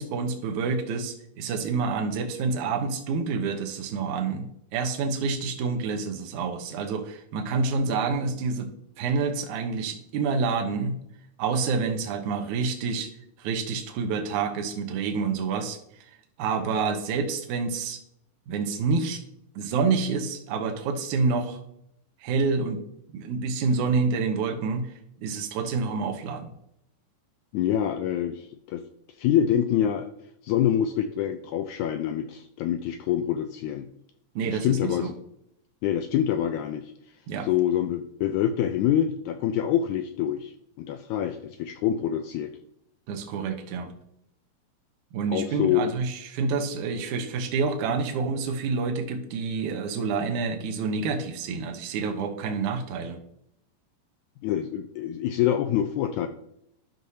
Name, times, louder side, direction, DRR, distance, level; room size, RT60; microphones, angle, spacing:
voice 1, 0.0-8.7 9.0-11.0 11.4-13.1 13.4-15.8 16.4-18.0 18.5-19.2 19.6-21.6 22.2-22.8 23.1-24.9 25.2-26.5 34.4-35.1 37.3-37.5 43.1-43.9 45.1-53.2, right 4 dB, 70° right, 4 dB, 2.3 m, -28 dB
voice 2, 27.5-28.8 29.2-30.1 30.4-33.9 34.5-35.1 35.8-36.9 37.4-42.5 45.3-45.9 54.4-56.3, left 10 dB, 80° left, 7 dB, 1.7 m, -26 dB
12.0 x 6.2 x 2.8 m, 0.74 s
omnidirectional pair, 3.8 m